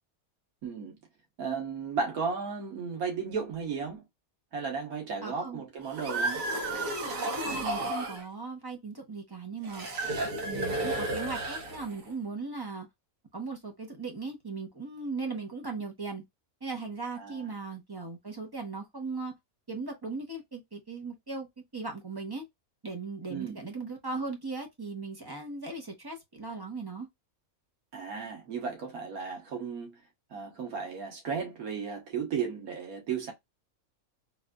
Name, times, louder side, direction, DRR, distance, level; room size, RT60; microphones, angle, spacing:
voice 1, 0.6-1.0 1.4-4.0 4.5-6.4 17.2-17.5 23.3-23.6 27.9-30.0 30.3-33.3, right 5 dB, 90° right, 1.6 m, -34 dB
voice 2, 5.2-5.6 7.4-9.9 10.4-12.9 13.3-16.2 16.6-19.3 19.7-21.5 21.7-22.4 22.8-27.1, right 4 dB, 20° right, 0.8 m, -38 dB
sound 1, 5.8-8.2 9.6-12.1, right 2 dB, 70° right, 1.3 m, -32 dB
4.1 x 2.5 x 2.3 m
omnidirectional pair, 1.5 m